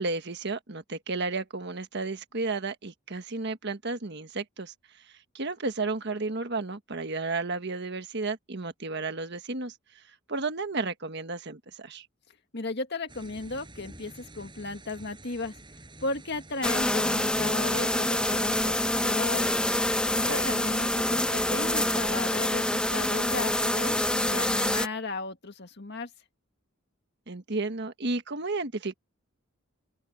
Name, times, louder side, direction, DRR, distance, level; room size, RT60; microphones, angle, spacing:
voice 1, 0.0-4.7 5.3-9.7 10.3-12.1 20.3-20.5 27.3-28.9, right 3 dB, 55° right, 1.5 m, -32 dB
voice 2, 12.5-15.6 16.0-19.5 20.1-26.1, left 3 dB, 55° left, 1.9 m, -35 dB
sound 1, 13.1-24.8, right 2 dB, 25° right, 8.0 m, -49 dB
sound 2, 16.6-24.9, left 1 dB, 5° left, 0.8 m, -26 dB
open air
head